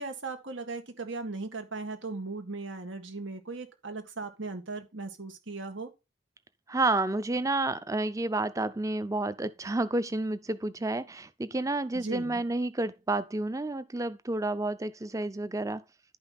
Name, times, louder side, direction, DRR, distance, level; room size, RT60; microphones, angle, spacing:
voice 1, 0.0-5.9 11.9-12.4, right 3 dB, 85° right, 2.0 m, -38 dB
voice 2, 6.7-15.8, right 2 dB, 15° right, 0.5 m, -30 dB
11.0 x 5.5 x 4.2 m
head